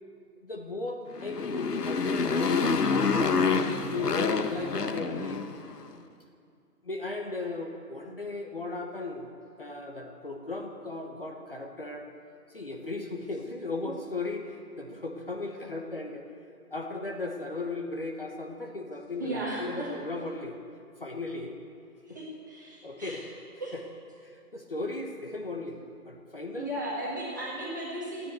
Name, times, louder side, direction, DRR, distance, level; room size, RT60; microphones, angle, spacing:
voice 1, 0.4-5.4 6.8-9.3 9.6-12.0 12.5-16.2 16.7-20.6 21.0-21.6 22.1-22.2 22.8-23.2 23.7-23.8 24.2-25.8 26.0-26.7, left 3 dB, 35° left, 2 dB, 1.1 m, -36 dB
Motorcycle, 1.1-5.7, left 5 dB, 85° left, 1.3 m, -27 dB
voice 2, 19.2-19.9 22.1-23.3 23.6-23.7 26.6-28.3, right 1 dB, 10° right, -6 dB, 1.6 m, -35 dB
15.5 x 10.0 x 8.1 m, 2.4 s
hypercardioid pair, 180°, 47 cm